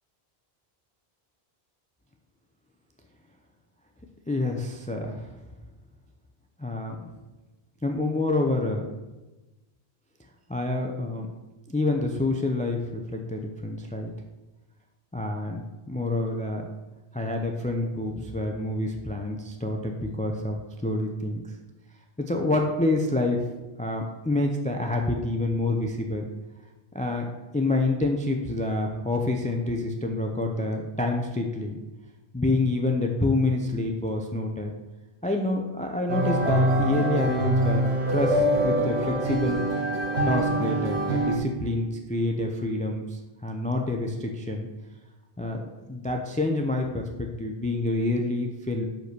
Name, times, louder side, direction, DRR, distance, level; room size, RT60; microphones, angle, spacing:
voice 1, 4.3-5.3 6.6-7.1 7.8-8.9 10.5-11.3 11.7-14.1 15.1-16.6 17.1-21.4 22.3-23.4 23.8-26.2 26.9-31.8 32.3-34.7 35.2-39.6 40.3-44.7 45.4-48.9, left 2 dB, 10° left, 2 dB, 0.5 m, -27 dB
sound 1, 36.1-41.4, right 1 dB, 85° right, 1.4 m, -24 dB
6.0 x 5.4 x 6.8 m, 1.1 s
omnidirectional pair, 1.1 m